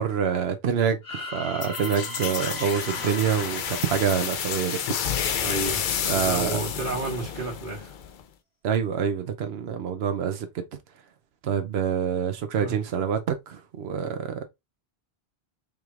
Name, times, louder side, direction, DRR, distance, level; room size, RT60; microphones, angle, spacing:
voice 1, 0.0-5.5 6.1-6.6 8.6-10.6 11.4-14.5, right 7 dB, 85° right, 0.9 m, -27 dB
sound 1, 1.0-5.1, left 1 dB, 85° left, 2.4 m, -39 dB
sound 2, 1.6-8.2, left 8 dB, 60° left, 0.6 m, -30 dB
voice 2, 5.4-5.8 6.1-7.9 12.6-12.8, right 2 dB, 55° right, 1.6 m, -31 dB
5.0 x 3.0 x 2.4 m
omnidirectional pair, 1.0 m